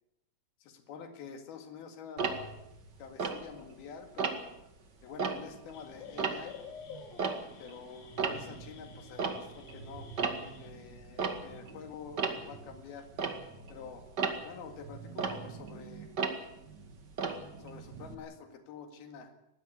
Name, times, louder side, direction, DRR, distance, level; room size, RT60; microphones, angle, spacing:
voice 1, 0.6-2.5 3.0-4.6 5.0-6.6 7.6-10.1 10.6-13.1 13.7-14.1 14.4-16.1 17.6-19.3, left 6 dB, 85° left, 7 dB, 4.0 m, -47 dB
Tick-tock, 2.2-3.8 4.2-4.6 5.0-18.1, right 5 dB, 35° right, 1.9 m, -36 dB
sound 1, 5.7-10.7, left 6 dB, 70° left, 4.0 m, -51 dB
20.0 x 16.0 x 9.8 m, 0.85 s
omnidirectional pair, 4.3 m